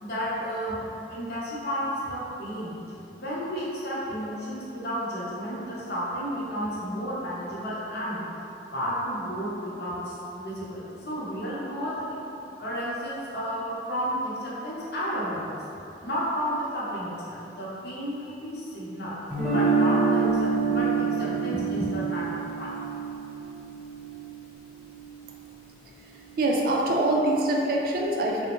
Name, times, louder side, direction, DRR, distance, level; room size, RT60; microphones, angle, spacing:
voice 1, 0.0-2.7 3.2-8.2 8.7-12.2 12.6-15.6 16.0-19.1 19.5-22.7, equal, 60° left, -7 dB, 0.7 m, -32 dB
Guitar, 19.3-25.3, right 5 dB, 5° right, 1.0 m, -27 dB
voice 2, 26.4-28.4, right 1 dB, 55° right, -1 dB, 0.3 m, -24 dB
3.4 x 2.1 x 2.9 m, 2.8 s
head